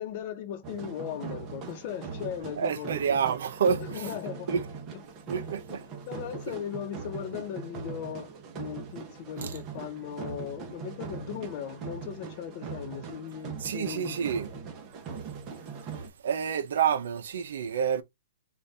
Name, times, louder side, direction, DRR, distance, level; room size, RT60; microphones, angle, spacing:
voice 1, 0.0-3.0 3.9-4.5 5.7-5.8 6.1-14.2, left 9 dB, 40° left, 0.9 m, -38 dB
sound 1, 0.6-16.1, right 6 dB, 30° right, 0.8 m, -41 dB
voice 2, 2.6-4.1 4.5-4.6 5.3-5.9 9.4-9.6 13.6-14.5 15.9-18.0, right 7 dB, 75° right, 0.7 m, -29 dB
4.0 x 2.5 x 3.3 m
hypercardioid pair, 150°, 0 cm